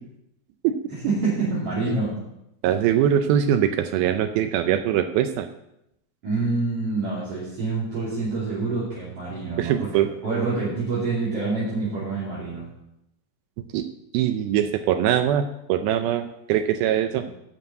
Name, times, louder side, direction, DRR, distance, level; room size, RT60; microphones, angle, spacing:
voice 1, 0.9-2.1 6.2-9.9 10.2-12.7 17.2-17.3, right 3 dB, 40° right, -9 dB, 3.4 m, -26 dB
voice 2, 2.6-5.5 9.6-10.1 13.7-13.9 14.1-17.3, right 10 dB, 80° right, 8 dB, 2.2 m, -22 dB
9.1 x 5.9 x 7.8 m, 0.83 s
omnidirectional pair, 4.7 m